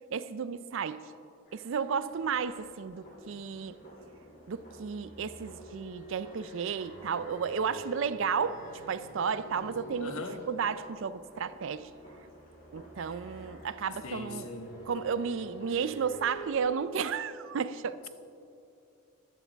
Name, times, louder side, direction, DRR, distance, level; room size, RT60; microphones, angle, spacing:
voice 1, 0.1-1.0 1.5-3.8 4.5-8.6 8.9-10.2 10.5-11.9 12.7-14.5 14.9-18.1, right 6 dB, 60° right, 14 dB, 0.4 m, -33 dB
sound 1, 1.4-16.5, right 1 dB, 45° left, 2.8 m, -48 dB
voice 2, 10.0-10.4 14.0-14.9, left 2 dB, 80° left, 5 dB, 1.2 m, -40 dB
13.5 x 12.0 x 3.4 m, 2.6 s
head